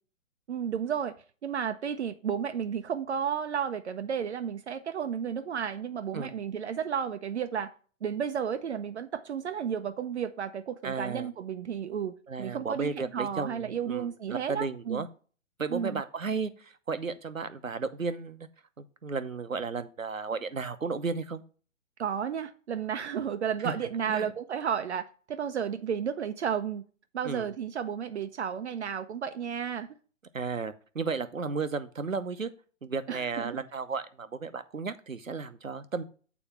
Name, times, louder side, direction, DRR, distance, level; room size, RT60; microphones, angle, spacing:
voice 1, 0.5-1.2 1.4-7.7 8.0-15.1 15.7-16.0 22.0-26.8 27.1-30.0 33.1-33.5, right 8 dB, 60° right, 0.7 m, -32 dB
voice 2, 10.8-11.3 12.3-15.1 15.6-18.5 18.8-21.4 23.6-23.7 24.1-24.3 27.2-27.5 30.3-32.5 32.8-36.0, right 4 dB, 90° right, 0.9 m, -34 dB
7.2 x 4.3 x 5.7 m
figure-of-eight pair, 130°, 39 cm